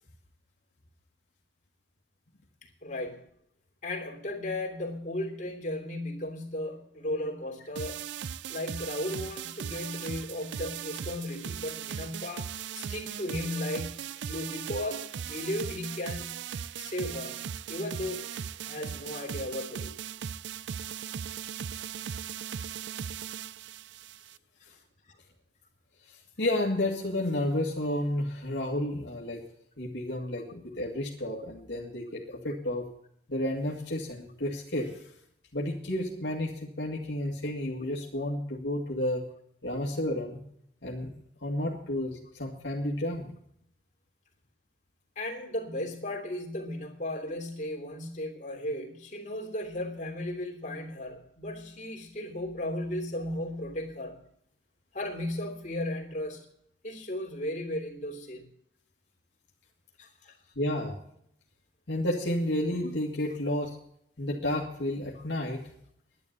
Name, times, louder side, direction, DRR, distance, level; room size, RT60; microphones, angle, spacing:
voice 1, 2.8-3.2 3.8-8.0 8.5-16.4 16.8-17.4 17.7-18.3 18.6-20.0 22.4-22.5 45.1-54.2 54.9-56.4 56.8-58.4 60.0-60.3, left 1 dB, 45° left, 0 dB, 3.1 m, -35 dB
sound 1, 7.8-24.4, right 8 dB, 75° right, 0.4 m, -38 dB
voice 2, 26.1-29.4 29.8-32.9 33.3-35.1 35.5-39.2 39.6-40.4 40.8-41.1 41.4-43.3 60.5-61.0 61.9-63.8 64.2-65.7, left 1 dB, 70° left, 0 dB, 2.1 m, -31 dB
11.0 x 10.5 x 8.1 m, 0.70 s
head